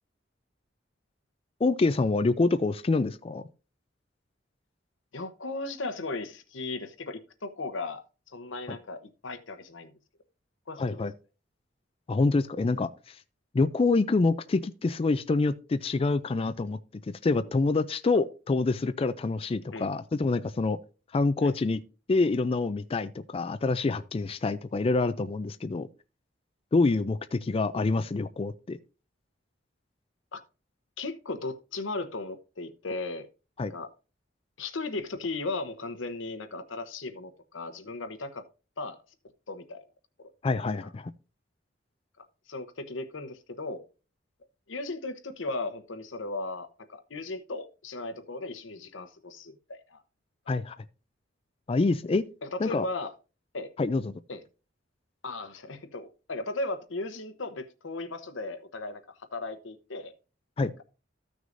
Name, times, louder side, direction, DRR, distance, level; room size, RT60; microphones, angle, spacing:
voice 1, 1.6-3.5 8.7-8.8 10.8-11.1 12.1-13.2 13.5-16.8 17.1-20.8 21.1-21.8 22.1-25.9 26.7-28.8 33.6-33.7 40.4-41.1 50.5-50.7 51.7-52.2 52.6-52.8 53.8-54.1 60.6-60.7, left 3 dB, 30° left, 0.4 m, -26 dB
voice 2, 5.1-10.0 10.7-11.0 19.7-19.9 21.4-21.5 30.3-30.4 31.0-33.3 33.7-33.9 34.6-38.4 38.8-39.0 39.5-39.8 40.2-40.3 42.5-43.8 44.7-50.0 52.4-53.1 53.5-53.7 54.3-54.4 55.2-60.1, left 3 dB, 85° left, 1.0 m, -36 dB
14.5 x 6.2 x 2.6 m
head